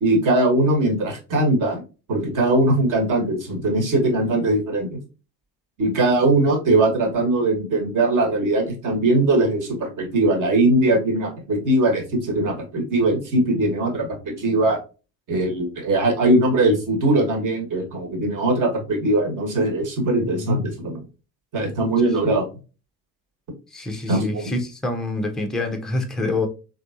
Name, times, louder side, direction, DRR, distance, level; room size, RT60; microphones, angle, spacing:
voice 1, 0.0-1.8 2.1-5.0 5.8-14.8 15.3-21.0 21.5-22.4 24.1-24.5, right 2 dB, 40° right, 1.3 m, -20 dB
voice 2, 23.7-26.5, left 2 dB, ahead, 0.4 m, -26 dB
3.4 x 2.7 x 2.4 m
hypercardioid pair, 70°, 49 cm